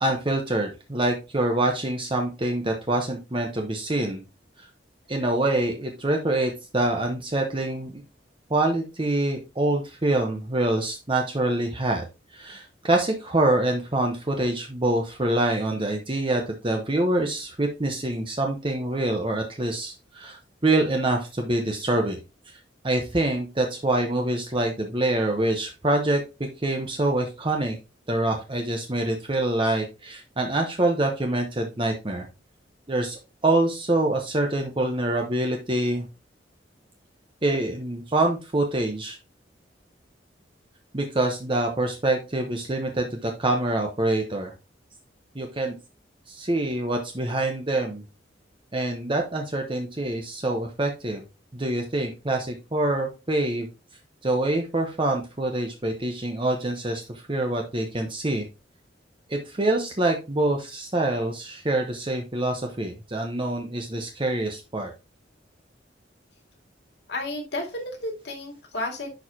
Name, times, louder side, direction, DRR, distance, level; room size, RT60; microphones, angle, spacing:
voice 1, 0.0-4.2 4.6-4.7 5.1-8.0 8.5-12.0 12.3-22.2 22.5-22.6 22.8-27.8 28.1-32.2 32.9-36.1 37.4-39.2 40.9-44.5 45.3-45.7 46.3-48.0 48.7-51.2 51.5-53.7 54.2-58.5 59.3-64.9, right 2 dB, 30° right, 2 dB, 1.0 m, -25 dB
voice 2, 67.1-69.1, left 2 dB, 65° left, 2 dB, 2.3 m, -32 dB
10.5 x 4.8 x 2.8 m, 0.27 s
head